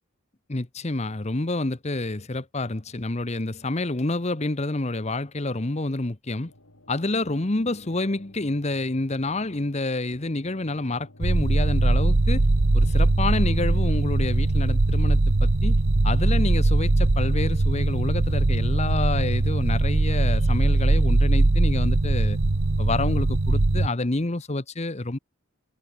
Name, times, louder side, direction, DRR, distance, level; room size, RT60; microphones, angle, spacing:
voice 1, 0.5-6.5 6.9-12.5 12.7-22.4 22.8-25.2, left 2 dB, 30° left, 1.0 m, -28 dB
sound 1, 6.4-14.6, left 1 dB, 80° left, 6.7 m, -53 dB
sound 2, 11.2-23.9, right 2 dB, 60° right, 1.0 m, -21 dB
head